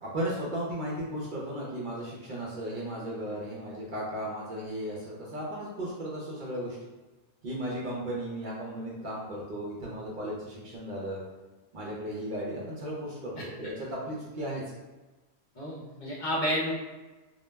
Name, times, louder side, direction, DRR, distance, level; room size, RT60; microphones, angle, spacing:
voice 1, 0.0-6.8 7.4-11.2 11.7-14.6, right 1 dB, 55° right, -5 dB, 0.6 m, -35 dB
voice 2, 15.6-16.7, equal, 55° left, -6 dB, 0.6 m, -30 dB
2.2 x 2.0 x 3.2 m, 1.2 s
omnidirectional pair, 1.1 m